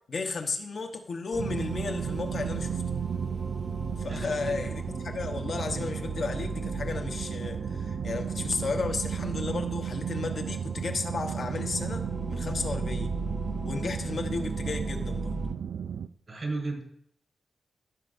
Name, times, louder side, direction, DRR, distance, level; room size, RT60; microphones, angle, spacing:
voice 1, 0.1-2.8 4.0-13.1 13.6-15.4, left 4 dB, 60° left, 4 dB, 1.0 m, -34 dB
sound 1, 1.3-15.5, right 2 dB, 30° right, 1.1 m, -39 dB
sound 2, 1.4-16.1, right 7 dB, 80° right, 0.3 m, -34 dB
voice 2, 4.0-4.5 16.3-16.8, right 3 dB, 45° right, -1 dB, 4.4 m, -34 dB
15.5 x 6.6 x 2.6 m, 0.67 s
cardioid pair, 95°, 0 cm